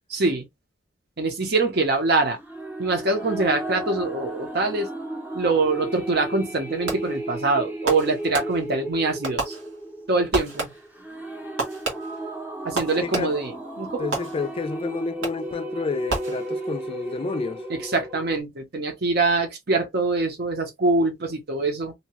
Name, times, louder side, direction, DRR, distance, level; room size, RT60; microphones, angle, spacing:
voice 1, 0.1-0.5 1.2-2.4 2.8-4.9 5.3-9.5 10.1-10.7 12.6-14.1 17.7-21.9, right 3 dB, 55° right, 0.8 m, -24 dB
sound 1, 2.4-18.4, right 1 dB, 10° right, 0.7 m, -34 dB
Fireworks, 6.9-7.3 7.9-8.9 9.2-10.0 10.3-11.0 11.6-13.6 14.1-14.7 15.2-15.6 16.1-16.8, right 3 dB, 85° right, 1.3 m, -32 dB
voice 2, 13.0-13.4 14.0-17.6, left 4 dB, 30° left, 0.3 m, -30 dB
2.8 x 2.3 x 2.9 m
head